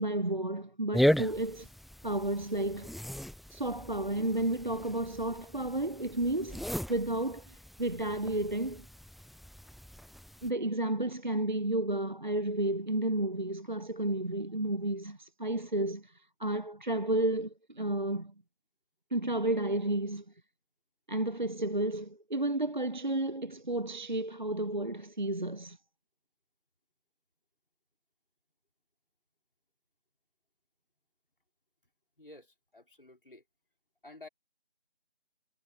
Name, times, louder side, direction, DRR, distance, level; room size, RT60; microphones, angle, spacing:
voice 1, 0.0-1.7 2.0-2.9 3.5-6.6 6.9-8.8 10.4-18.3 19.1-20.2 21.1-25.8, right 1 dB, 50° right, 0.7 m, -32 dB
sound 1, 0.9-10.5, equal, ahead, 0.5 m, -36 dB
voice 2, 32.2-33.4 34.0-34.3, left 2 dB, 60° left, 3.6 m, -52 dB
figure-of-eight pair, 180°, 31 cm